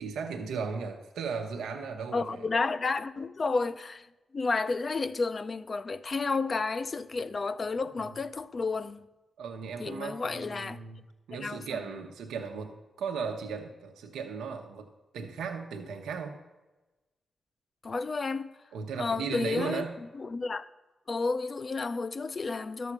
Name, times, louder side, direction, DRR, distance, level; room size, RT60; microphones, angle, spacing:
voice 1, 0.0-2.4 8.0-8.1 9.4-14.9 15.1-16.4 18.7-20.0, right 5 dB, 90° right, 0.9 m, -36 dB
voice 2, 2.1-4.1 4.3-9.1 9.8-10.8 11.4-11.8 17.8-18.5 19.0-19.8 20.1-20.7 21.1-22.9, left 4 dB, 50° left, 0.6 m, -31 dB
12.0 x 7.1 x 6.0 m
supercardioid pair, 50°, 0 cm